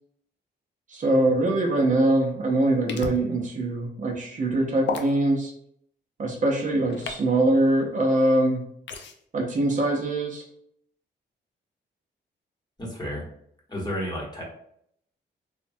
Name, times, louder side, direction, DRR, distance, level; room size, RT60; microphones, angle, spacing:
voice 1, 0.9-5.5 6.2-8.7 9.3-10.4, right 1 dB, 40° right, -1 dB, 0.5 m, -23 dB
sound 1, 2.9-3.2 4.9-5.1 6.9-7.2 8.9-9.1, left 5 dB, 75° left, 0.4 m, -31 dB
voice 2, 12.8-13.2 13.7-14.4, equal, 20° left, -3 dB, 1.0 m, -31 dB
3.1 x 2.1 x 2.6 m, 0.69 s
cardioid pair, 110°, 19 cm